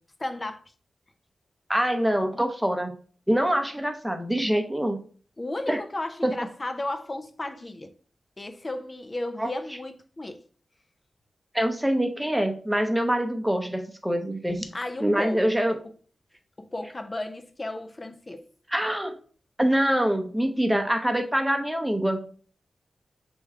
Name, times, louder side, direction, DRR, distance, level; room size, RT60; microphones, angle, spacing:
voice 1, 0.2-0.6 5.4-7.9 8.4-10.4 14.7-15.4 16.6-18.4, left 2 dB, 30° left, 0.5 m, -34 dB
voice 2, 1.7-3.0 3.3-5.0 5.7-5.8 6.2-6.3 9.4-9.5 11.5-14.7 15.0-15.8 18.7-19.2 19.6-22.3, equal, 5° right, 0.7 m, -25 dB
3.5 x 3.0 x 4.6 m
wide cardioid pair, 90°, 0 cm